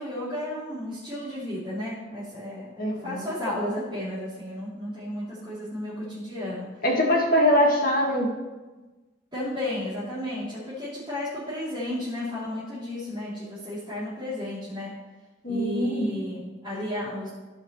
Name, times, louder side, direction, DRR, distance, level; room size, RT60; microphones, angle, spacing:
voice 1, 0.0-6.8 9.3-14.9 15.5-17.3, left 1 dB, 25° right, -13 dB, 3.2 m, -33 dB
voice 2, 2.8-3.3 6.8-8.3 15.4-16.1, equal, 45° left, 0 dB, 1.7 m, -23 dB
16.5 x 5.6 x 3.2 m, 1.2 s
head